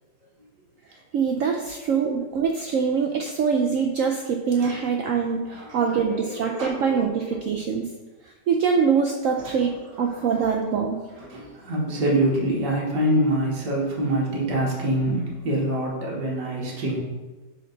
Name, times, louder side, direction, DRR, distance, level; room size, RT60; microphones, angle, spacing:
voice 1, 1.1-7.9 8.5-11.0, right 6 dB, 85° right, 2 dB, 0.7 m, -24 dB
voice 2, 5.5-7.4 9.4-9.5 11.2-17.0, right 1 dB, 70° right, -4 dB, 2.0 m, -25 dB
5.6 x 5.1 x 3.9 m, 1.3 s
omnidirectional pair, 1.9 m